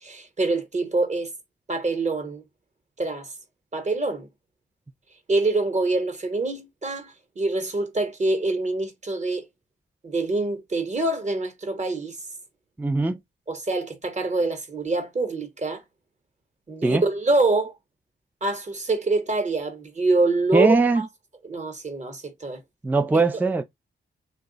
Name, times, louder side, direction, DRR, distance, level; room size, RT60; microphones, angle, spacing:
voice 1, 0.0-1.3 1.7-2.4 3.0-3.3 3.7-4.3 5.3-9.4 10.0-12.2 13.5-15.8 16.7-17.7 18.4-21.1 21.4-22.6 23.1-23.2, right 3 dB, 35° right, 1.1 m, -25 dB
voice 2, 12.8-13.2 16.8-17.0 20.5-21.1 22.8-23.6, right 3 dB, 10° right, 0.4 m, -20 dB
3.1 x 2.3 x 3.8 m
cardioid pair, 95°, 21 cm